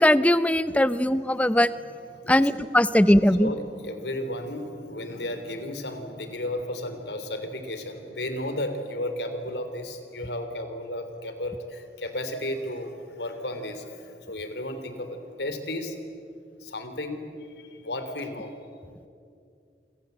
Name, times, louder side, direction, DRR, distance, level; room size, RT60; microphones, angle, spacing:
voice 1, 0.0-1.7 2.3-3.5, left 1 dB, 10° left, 14 dB, 0.6 m, -20 dB
voice 2, 3.4-15.9 16.6-17.2 17.6-18.5, left 1 dB, 80° left, 8 dB, 3.2 m, -33 dB
28.0 x 25.5 x 8.1 m, 2.4 s
head